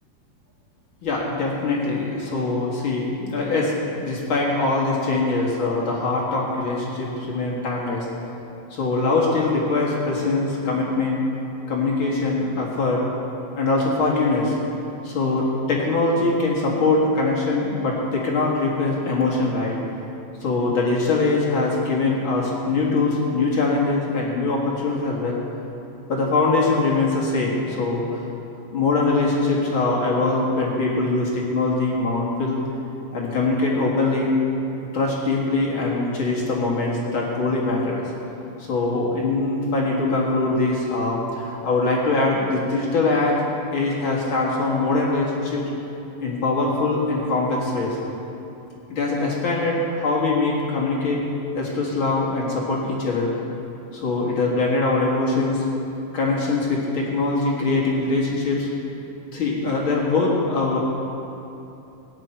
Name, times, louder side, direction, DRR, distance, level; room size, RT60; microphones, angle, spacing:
voice 1, 1.0-3.7 4.0-8.1 8.7-11.2 11.7-13.0 13.5-14.6 15.0-19.8 20.4-25.4 26.1-28.2 28.7-32.6 33.1-34.3 34.9-38.0 38.6-43.4 43.7-45.6 46.2-48.0 48.9-51.2 51.5-53.3 53.9-55.6 56.1-58.7 59.3-60.8, left 3 dB, 40° left, -4 dB, 2.2 m, -22 dB
18.5 x 9.8 x 4.5 m, 2.9 s
omnidirectional pair, 4.0 m